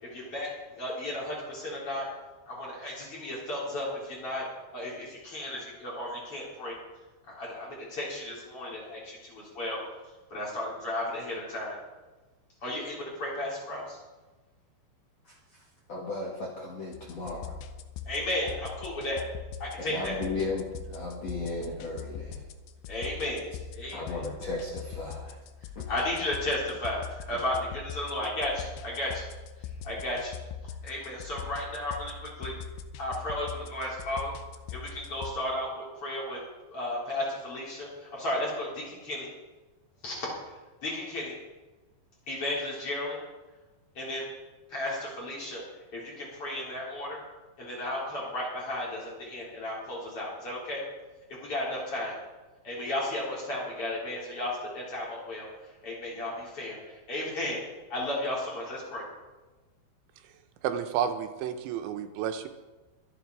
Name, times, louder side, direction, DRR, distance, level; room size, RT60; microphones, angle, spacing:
voice 1, 0.0-2.1 2.5-4.5 4.7-6.8 7.3-9.8 10.3-11.8 12.6-14.0 18.1-19.2 19.6-20.2 22.9-24.0 25.9-29.2 29.6-30.4 30.8-32.6 33.0-34.3 34.7-36.4 36.7-39.3 40.0-40.3 40.8-41.3 42.3-43.2 43.9-44.3 44.7-45.6 45.9-47.2 47.6-50.8 51.3-52.2 52.6-55.5 55.8-57.6 57.9-59.0, left 1 dB, 30° left, -5 dB, 4.3 m, -34 dB
voice 2, 15.2-15.6 15.9-17.5 19.8-22.5 23.9-25.4 25.8-25.9, left 2 dB, 50° left, -3 dB, 2.2 m, -35 dB
sound 1, 16.9-35.3, left 7 dB, 80° left, 2.8 m, -42 dB
voice 3, 60.6-62.5, right 9 dB, 85° right, 8 dB, 3.2 m, -31 dB
23.5 x 8.1 x 4.7 m, 1.2 s
omnidirectional pair, 5.2 m